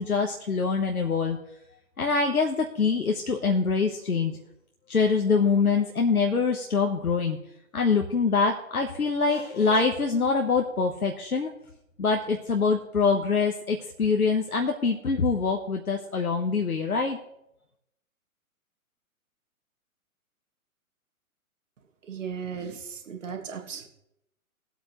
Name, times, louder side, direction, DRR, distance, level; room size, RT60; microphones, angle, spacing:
voice 1, 0.0-1.4 2.0-4.4 4.9-7.4 7.7-11.5 12.0-17.2, left 4 dB, 80° left, 2 dB, 1.3 m, -24 dB
voice 2, 22.1-23.9, right 6 dB, 60° right, 3 dB, 2.3 m, -36 dB
19.5 x 8.2 x 3.2 m, 0.80 s
figure-of-eight pair, 120°, 43 cm